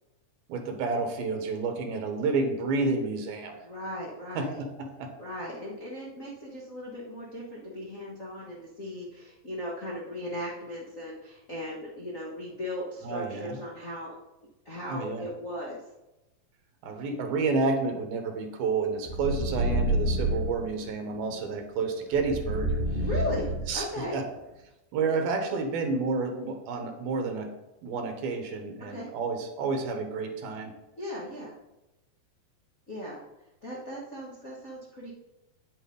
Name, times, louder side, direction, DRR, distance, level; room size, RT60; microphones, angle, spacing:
voice 1, 0.5-3.5 4.3-5.1 13.0-13.6 14.9-15.3 16.8-22.7 23.7-23.9 24.1-24.2 24.9-27.5 27.8-30.7, right 4 dB, 80° right, 4 dB, 3.1 m, -30 dB
voice 2, 3.6-4.6 5.2-14.1 14.6-15.8 21.3-21.4 23.0-24.2 28.9-29.1 31.0-31.5 32.9-33.2 33.6-35.1, left 1 dB, 55° left, -5 dB, 0.9 m, -37 dB
sound 1, 19.0-20.6 22.1-24.0, right 1 dB, 5° left, 3.3 m, -28 dB
9.4 x 7.9 x 3.9 m, 0.97 s
omnidirectional pair, 4.2 m